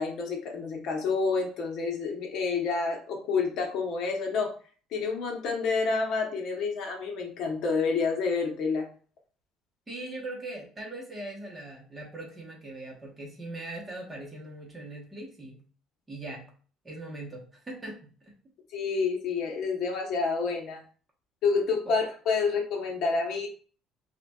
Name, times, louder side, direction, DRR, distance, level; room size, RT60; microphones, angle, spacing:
voice 1, 0.0-4.5 4.9-8.9 18.7-20.8 21.4-23.5, left 4 dB, 50° left, 2 dB, 0.8 m, -28 dB
voice 2, 9.9-15.6 16.1-16.5 16.8-18.1 21.9-22.0, right 2 dB, 10° right, -3 dB, 0.9 m, -40 dB
5.4 x 2.2 x 2.3 m, 0.41 s
cardioid pair, 165°, 0 cm